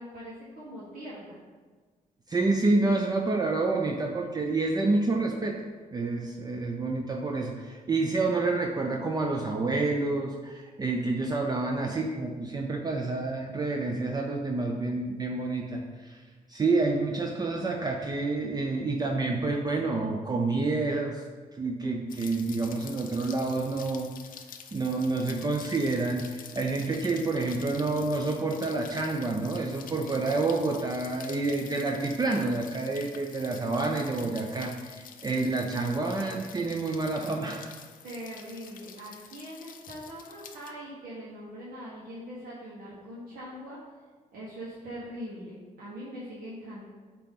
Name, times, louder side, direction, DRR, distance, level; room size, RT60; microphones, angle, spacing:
voice 1, 0.0-1.4 38.0-43.8 44.3-46.9, equal, 80° right, -8 dB, 1.3 m, -42 dB
voice 2, 2.3-5.6 5.9-16.2 16.5-21.2 21.5-24.1 24.7-37.7, right 3 dB, 25° right, 1 dB, 0.5 m, -28 dB
Rain, 22.1-40.7, left 8 dB, 70° left, 0.5 m, -48 dB
8.5 x 3.0 x 3.8 m, 1.4 s
cardioid pair, 95°, 15 cm